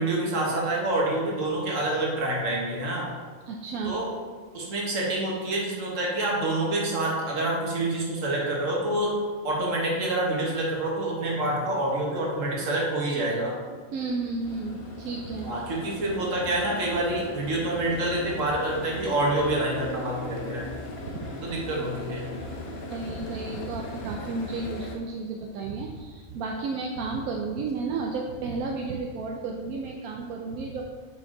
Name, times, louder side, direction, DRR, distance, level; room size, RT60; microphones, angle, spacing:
voice 1, 0.0-3.1 3.8-4.1 4.5-9.1 9.4-13.5 15.4-20.7 21.4-22.3, right 1 dB, 65° right, -3 dB, 1.7 m, -27 dB
voice 2, 3.5-4.0 13.9-15.5 21.0-21.3 22.9-30.8, right 4 dB, 85° right, 0 dB, 1.1 m, -32 dB
sound 1, 14.4-25.0, left 1 dB, 85° left, 1.3 m, -38 dB
6.2 x 4.7 x 3.8 m, 1.6 s
omnidirectional pair, 1.5 m